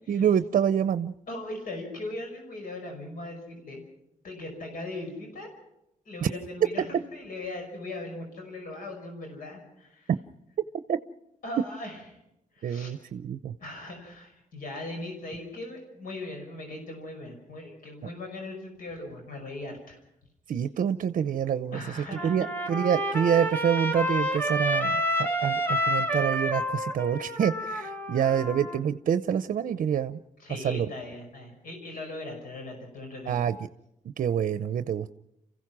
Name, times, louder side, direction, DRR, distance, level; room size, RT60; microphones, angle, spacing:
voice 1, 0.1-1.1 10.9-11.0 12.6-13.5 20.5-21.8 22.2-30.2 30.6-30.9 33.3-33.6 34.2-35.1, right 8 dB, 70° right, 12 dB, 0.7 m, -27 dB
voice 2, 1.3-3.8 4.2-5.5 6.1-10.1 11.4-12.0 12.6-12.9 13.6-20.0 21.7-22.3 22.7-22.8 30.4-33.4, left 2 dB, 90° left, 3 dB, 5.7 m, -39 dB
Trumpet, 22.2-28.8, equal, 15° left, 2.2 m, -29 dB
29.0 x 15.5 x 6.1 m, 0.85 s
wide cardioid pair, 130°, 14 cm